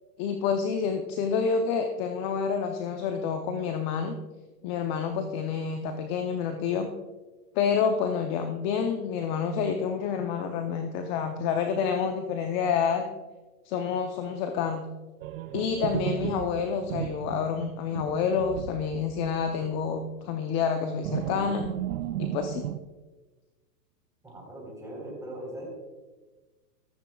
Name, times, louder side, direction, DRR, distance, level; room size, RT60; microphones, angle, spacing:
voice 1, 0.2-4.1 4.6-6.9 7.5-13.1 13.7-14.8 15.5-21.7 22.2-22.6, left 6 dB, 30° left, 6 dB, 0.7 m, -28 dB
sound 1, 15.2-19.5 19.8-20.0 21.0-22.8, right 13 dB, 55° right, 0.7 m, -34 dB
voice 2, 24.2-25.7, right 1 dB, 5° right, -2 dB, 4.0 m, -40 dB
15.0 x 14.0 x 2.3 m, 1.2 s
hypercardioid pair, 135°, 49 cm